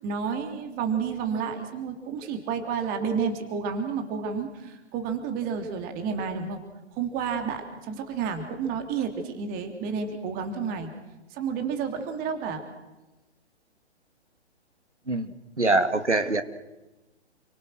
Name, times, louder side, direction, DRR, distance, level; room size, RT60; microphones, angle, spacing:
voice 1, 0.0-6.6 6.9-10.9 11.3-12.6, right 6 dB, 25° right, 5 dB, 3.4 m, -30 dB
voice 2, 15.6-16.4, right 2 dB, 85° right, 10 dB, 2.2 m, -23 dB
30.0 x 24.5 x 6.5 m, 1.1 s
figure-of-eight pair, 125°, 34 cm